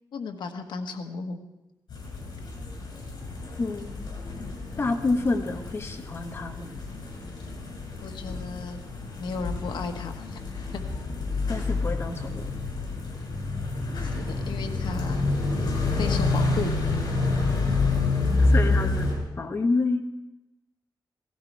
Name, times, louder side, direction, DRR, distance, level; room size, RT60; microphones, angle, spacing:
voice 1, 0.1-1.4 8.0-8.8 9.2-10.8 14.0-15.3 16.0-16.8, left 4 dB, 90° left, 6 dB, 1.4 m, -35 dB
sound 1, 1.9-19.1, left 3 dB, 60° left, 7.2 m, -28 dB
voice 2, 3.6-4.1 4.8-6.7 11.5-12.5 18.5-19.1 19.4-20.0, left 3 dB, 30° left, 4 dB, 1.2 m, -28 dB
17.0 x 17.0 x 4.7 m, 0.98 s
wide cardioid pair, 155°, 8 cm